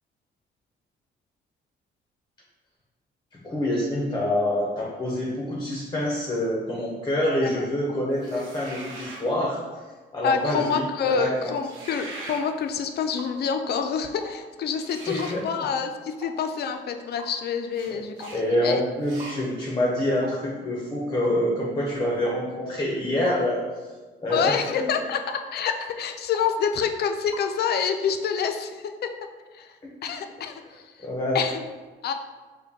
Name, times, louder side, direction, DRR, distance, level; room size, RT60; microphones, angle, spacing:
voice 1, 3.4-9.6 10.1-11.5 15.1-15.4 17.9-18.0 18.3-23.6 24.2-24.8 31.0-31.4, left 1 dB, 20° left, -3 dB, 0.7 m, -26 dB
sound 1, 8.2-9.3 11.6-12.4 14.8-15.4 17.7-17.9 18.2-18.4 19.0-19.4, right 2 dB, 80° right, 0.7 m, -40 dB
voice 2, 10.2-18.8 24.3-28.9 29.5-31.1 31.3-31.6 32.0-32.1, left 6 dB, 55° left, 7 dB, 0.4 m, -27 dB
sound 2, 13.2-13.4 14.2-14.4 15.2-15.4 16.2-16.4 17.2-17.4 18.2-18.4 19.2-19.4 20.2-20.4 21.2-21.4 22.3-22.4 23.3-23.4 24.3-24.5 25.3-25.5 26.3-26.5 27.3-27.5, right 1 dB, 25° right, 0.7 m, -41 dB
5.0 x 2.2 x 2.8 m, 1.3 s
cardioid pair, 90°, 20 cm